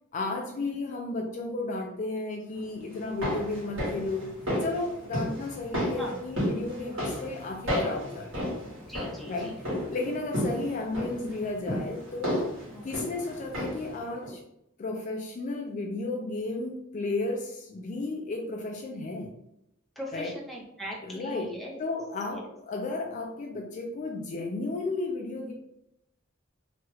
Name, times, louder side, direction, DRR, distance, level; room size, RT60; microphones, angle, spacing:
voice 1, 0.1-4.3 4.6-8.5 9.3-9.6 9.9-12.5 12.8-14.4 14.8-19.3 20.1-20.3 21.0-25.5, left 2 dB, 40° left, 2 dB, 0.3 m, -33 dB
sound 1, 2.9-14.0 14.2-14.3, equal, 85° right, 1.5 m, -33 dB
voice 2, 8.8-9.5 12.7-12.9 20.0-21.8 22.3-22.5, equal, ahead, -3 dB, 0.6 m, -40 dB
2.9 x 2.3 x 3.0 m, 0.82 s
head